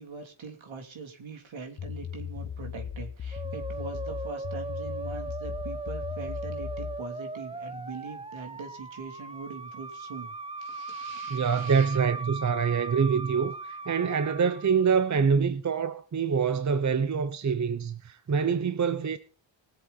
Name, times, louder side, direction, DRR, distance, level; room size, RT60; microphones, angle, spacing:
voice 1, 0.0-12.0, right 5 dB, 70° right, 3.1 m, -42 dB
sound 1, 1.8-7.0, left 8 dB, 35° left, 0.6 m, -37 dB
Musical instrument, 3.3-15.1, right 3 dB, 10° right, 0.5 m, -38 dB
voice 2, 11.3-19.2, right 6 dB, 35° right, 0.9 m, -25 dB
20.5 x 7.6 x 4.1 m
cardioid pair, 95°, 48 cm